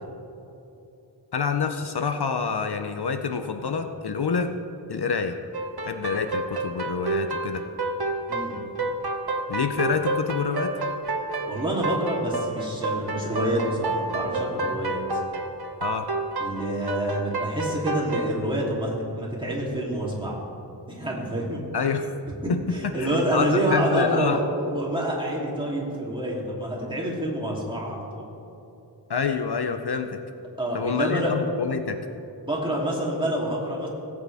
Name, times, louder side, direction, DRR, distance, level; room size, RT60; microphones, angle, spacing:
voice 1, 1.3-4.5 4.9-5.4 5.8-7.6 9.5-10.7 15.8-16.1 21.7-22.1 22.5-24.4 29.1-30.2 30.7-32.0, left 5 dB, 65° left, 7 dB, 0.7 m, -27 dB
sound 1, 5.5-18.3, right 2 dB, 60° right, 1.1 m, -29 dB
voice 2, 11.5-15.0 16.4-20.3 20.9-21.6 22.4-28.2 30.6-31.3 32.4-33.9, right 1 dB, 10° right, -5 dB, 3.0 m, -27 dB
18.5 x 8.7 x 3.5 m, 2.9 s
wide cardioid pair, 75°, 42 cm